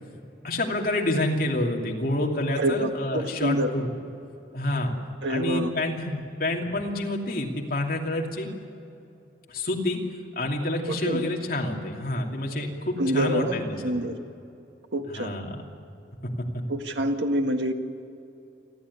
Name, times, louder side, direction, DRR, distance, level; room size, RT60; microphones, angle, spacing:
voice 1, 0.4-3.9 4.5-4.9 5.3-8.5 9.5-10.0 10.4-13.8 15.1-15.6, left 1 dB, 50° left, 0 dB, 2.8 m, -28 dB
voice 2, 2.6-3.7 5.2-5.7 10.9-11.3 13.0-14.2 14.9-15.3 16.7-17.7, right 1 dB, 80° right, 5 dB, 1.8 m, -26 dB
29.0 x 12.0 x 9.7 m, 2.7 s
head